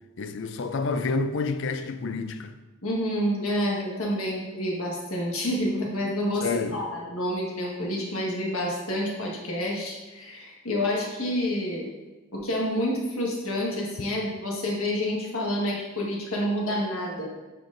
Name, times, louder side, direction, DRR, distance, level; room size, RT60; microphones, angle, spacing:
voice 1, 0.2-2.5 6.4-6.8, left 4 dB, 60° left, 0.4 m, -29 dB
voice 2, 2.8-11.9 12.3-17.3, equal, 85° left, 1.5 m, -28 dB
9.0 x 4.5 x 2.6 m
head